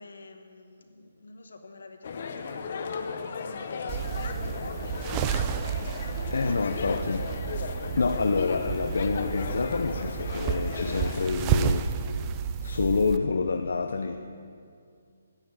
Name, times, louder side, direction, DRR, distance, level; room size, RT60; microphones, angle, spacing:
voice 1, 0.0-7.2, left 3 dB, 90° left, 5 dB, 1.6 m, -48 dB
sound 1, 2.0-11.3, left 5 dB, 45° left, 0.8 m, -36 dB
sound 2, 3.9-13.2, right 8 dB, 20° right, 0.4 m, -31 dB
voice 2, 6.3-7.2 8.0-11.9 12.6-14.2, left 4 dB, 70° left, 6 dB, 0.6 m, -27 dB
10.5 x 9.6 x 7.5 m, 2.3 s
hypercardioid pair, 170°, 0 cm